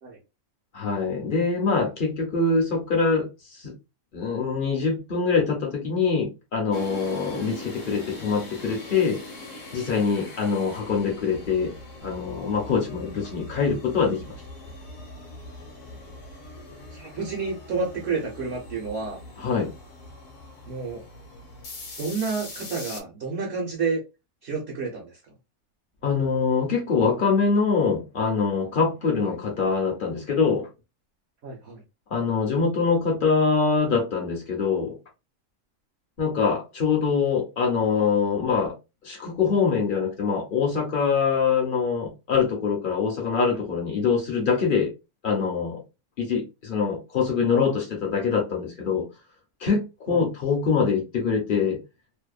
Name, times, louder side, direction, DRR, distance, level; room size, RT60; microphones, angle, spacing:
voice 1, 0.7-3.3 3.5-3.7 4.1-9.2 9.7-11.7 12.0-14.3 19.4-19.7 26.0-30.7 32.1-35.0 36.2-38.8 39.0-44.9 45.2-45.8 46.2-49.0 49.6-51.8, left 5 dB, 50° left, 0.7 m, -24 dB
sound 1, 6.7-23.0, left 1 dB, 65° left, 1.0 m, -41 dB
voice 2, 16.9-19.2 20.7-21.0 22.0-24.0 24.4-25.2 29.2-29.3 31.4-31.8 50.1-50.2, right 4 dB, 55° right, 0.9 m, -30 dB
2.7 x 2.0 x 2.3 m
omnidirectional pair, 1.6 m